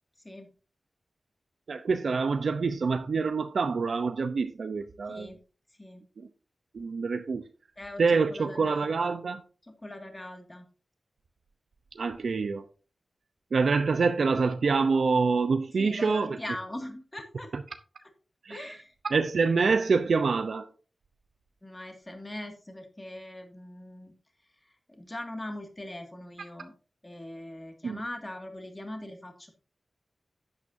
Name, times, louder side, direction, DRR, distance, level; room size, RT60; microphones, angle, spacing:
voice 1, 1.7-5.3 6.7-7.4 8.0-9.4 11.9-12.6 13.5-16.4 17.5-17.6 18.4-18.6 19.1-20.7 27.8-28.0, right 4 dB, 75° right, 0.7 m, -26 dB
voice 2, 5.1-5.4 5.8-6.0 7.8-8.0 8.3-8.9 9.8-10.7 15.8-17.5 18.0-18.1 18.5-18.9 21.6-24.1 24.9-26.7 27.0-29.5, left 1 dB, 20° left, 2.1 m, -41 dB
11.0 x 8.8 x 2.7 m
wide cardioid pair, 80°, 0 cm